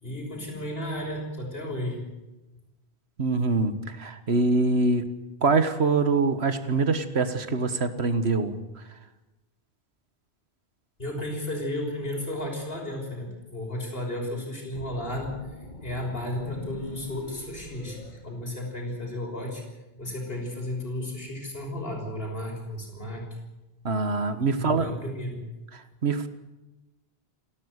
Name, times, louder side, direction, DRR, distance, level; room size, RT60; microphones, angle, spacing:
voice 1, 0.0-2.0 11.0-15.3 15.8-19.6 19.9-23.2 24.5-25.5, left 1 dB, 65° left, 0 dB, 6.4 m, -33 dB
voice 2, 3.2-5.0 5.4-8.6 23.8-24.9 25.7-26.3, right 3 dB, 80° right, 11 dB, 1.8 m, -24 dB
sound 1, 14.7-19.0, left 1 dB, 45° left, 2.4 m, -43 dB
29.5 x 12.5 x 8.2 m, 1.0 s
omnidirectional pair, 1.1 m